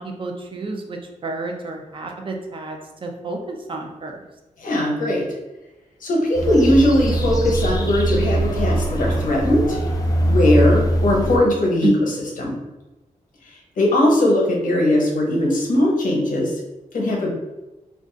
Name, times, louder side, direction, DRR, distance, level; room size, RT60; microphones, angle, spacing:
voice 1, 0.0-4.2 11.8-11.9, right 3 dB, 40° right, 2 dB, 0.4 m, -30 dB
voice 2, 4.6-5.2 6.0-9.8 10.2-11.9 12.4-12.6 13.5-16.5 16.9-17.3, left 1 dB, 80° left, -1 dB, 0.8 m, -19 dB
sound 1, 6.3-11.4, right 1 dB, 25° left, 0.4 m, -21 dB
2.4 x 2.3 x 3.7 m, 1.0 s
wide cardioid pair, 180°, 14 cm